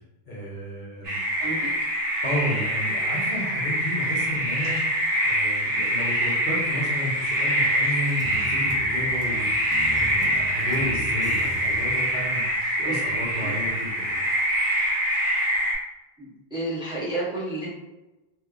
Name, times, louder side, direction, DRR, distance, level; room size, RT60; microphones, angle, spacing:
voice 1, 0.3-1.2 2.2-4.8 5.2-12.4 12.8-14.2, equal, 50° left, -6 dB, 0.9 m, -32 dB
sound 1, 1.0-15.7, equal, 75° right, 1.3 m, -25 dB
voice 2, 1.4-1.7 12.8-13.0 13.4-13.6 16.2-17.7, right 2 dB, 5° right, -8 dB, 0.9 m, -31 dB
sound 2, 8.0-12.0, equal, 20° left, 0.5 m, -39 dB
3.1 x 3.0 x 2.4 m, 1.1 s
omnidirectional pair, 1.1 m